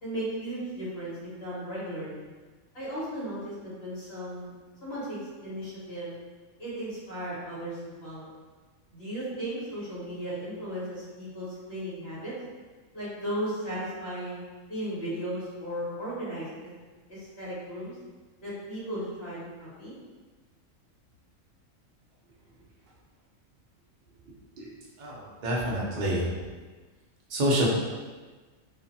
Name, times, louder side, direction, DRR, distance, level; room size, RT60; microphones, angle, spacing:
voice 1, 0.0-2.2 2.7-4.5 4.8-6.1 6.6-8.3 8.9-12.3 12.9-14.4 14.7-16.5 17.1-17.9 18.4-19.9, right 1 dB, 50° left, -10 dB, 1.3 m, -36 dB
voice 2, 25.0-26.3 27.3-27.7, right 1 dB, 55° right, -4 dB, 0.5 m, -27 dB
2.5 x 2.4 x 2.6 m, 1.3 s
omnidirectional pair, 1.4 m